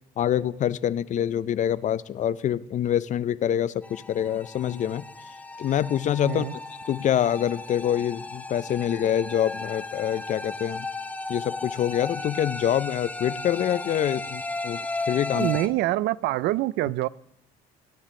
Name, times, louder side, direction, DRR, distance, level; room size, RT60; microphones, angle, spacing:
voice 1, 0.2-5.1 5.6-6.5 6.9-10.9 11.3-14.8 15.1-15.5, left 10 dB, 45° left, 17 dB, 0.5 m, -26 dB
sound 1, 3.8-15.7, left 2 dB, 10° left, 0.7 m, -35 dB
voice 2, 6.2-6.6 15.4-17.1, right 16 dB, 80° right, 19 dB, 0.4 m, -25 dB
18.0 x 10.0 x 3.7 m, 0.79 s
cardioid pair, 110°, 17 cm